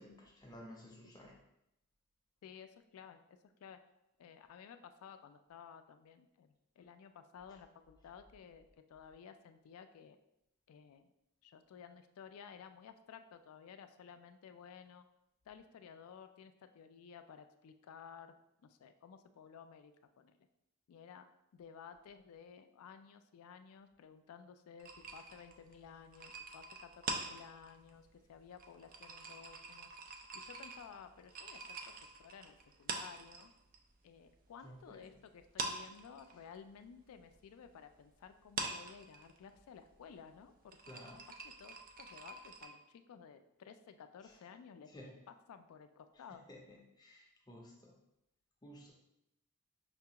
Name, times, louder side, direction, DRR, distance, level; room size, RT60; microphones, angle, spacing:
voice 1, 0.0-1.4 34.6-35.1 40.9-41.2 44.9-45.2 46.5-47.9 48.6-48.9, equal, 20° left, -1 dB, 0.5 m, -54 dB
voice 2, 2.4-3.8 4.2-10.2 10.7-11.1 11.4-15.0 15.5-18.3 18.6-20.5 20.9-21.3 21.5-29.9 30.3-31.9 32.2-33.5 34.0-44.9 45.3-46.4, left 7 dB, 80° left, 9 dB, 0.3 m, -55 dB
sound 1, 24.8-33.8 34.1-35.1 35.4-42.7, right 3 dB, 40° right, 0.3 m, -45 dB
5.6 x 2.3 x 2.8 m, 0.85 s
head